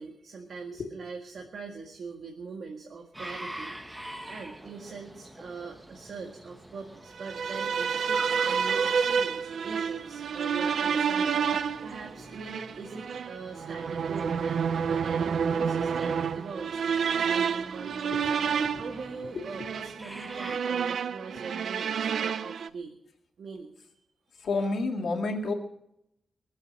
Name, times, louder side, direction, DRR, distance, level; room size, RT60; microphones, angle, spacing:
voice 1, 0.0-18.1 18.4-23.0 23.4-23.7 24.3-24.5, right 4 dB, 65° right, 1 dB, 1.7 m, -42 dB
sound 1, 3.1-20.6, right 1 dB, 10° right, 1.1 m, -46 dB
sound 2, 7.2-22.7, right 6 dB, 85° right, 0.5 m, -29 dB
voice 2, 19.3-19.7 24.4-25.5, left 3 dB, 65° left, 3 dB, 2.1 m, -31 dB
23.0 x 7.9 x 6.3 m, 0.81 s
wide cardioid pair, 165°, 0 cm